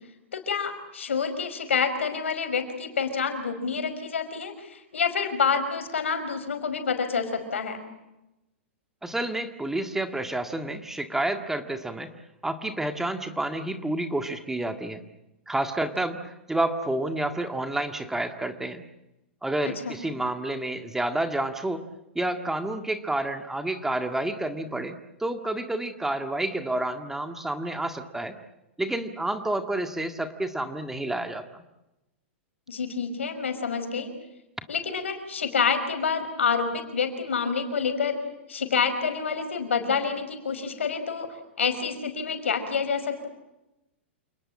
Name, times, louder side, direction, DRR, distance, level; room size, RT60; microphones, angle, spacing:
voice 1, 0.3-7.8 19.6-20.0 32.7-34.1 34.7-38.2 38.5-41.3 41.6-43.3, left 5 dB, 85° left, 7 dB, 5.2 m, -28 dB
voice 2, 9.0-12.1 12.4-15.0 15.5-18.8 19.4-21.8 22.2-28.4 28.8-31.6, right 1 dB, 5° right, 7 dB, 1.8 m, -29 dB
28.5 x 19.5 x 8.7 m, 0.94 s
hypercardioid pair, 115°, 7 cm